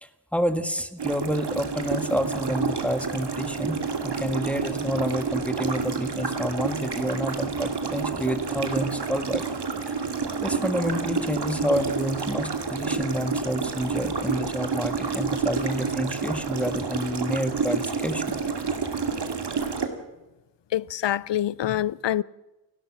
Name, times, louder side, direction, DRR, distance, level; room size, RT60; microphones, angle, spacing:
voice 1, 0.0-9.4 9.9-10.0 10.4-18.3, equal, 5° left, 1.6 m, -29 dB
sound 1, 1.0-19.9, right 5 dB, 70° right, 2.5 m, -29 dB
voice 2, 20.7-22.2, left 12 dB, 80° left, 0.6 m, -25 dB
29.5 x 12.0 x 7.5 m
wide cardioid pair, 85°, 42 cm